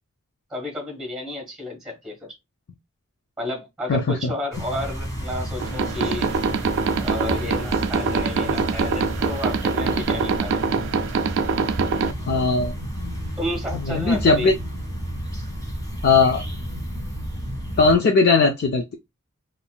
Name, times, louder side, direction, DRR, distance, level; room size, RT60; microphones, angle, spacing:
voice 1, 0.5-2.3 3.4-6.3 6.9-10.8 13.4-14.5, left 1 dB, ahead, 1.4 m, -31 dB
sound 1, 4.5-18.0, equal, 15° left, 1.5 m, -31 dB
sound 2, 5.6-12.1, right 5 dB, 55° right, 0.3 m, -24 dB
voice 2, 12.3-12.7 13.9-14.5 16.0-16.4 17.8-18.9, left 4 dB, 45° left, 0.4 m, -18 dB
3.6 x 2.5 x 2.2 m
head